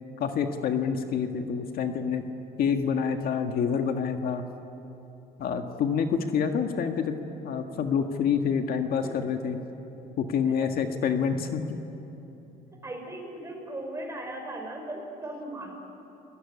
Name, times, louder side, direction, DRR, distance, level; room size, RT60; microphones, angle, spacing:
voice 1, 0.2-2.2 2.6-4.4 5.4-7.2 7.4-9.6 10.2-11.8, left 6 dB, 65° left, 5 dB, 1.7 m, -27 dB
voice 2, 12.8-15.7, right 1 dB, 15° right, 2 dB, 6.1 m, -37 dB
28.5 x 19.5 x 9.9 m, 3.0 s
cardioid pair, 110°, 17 cm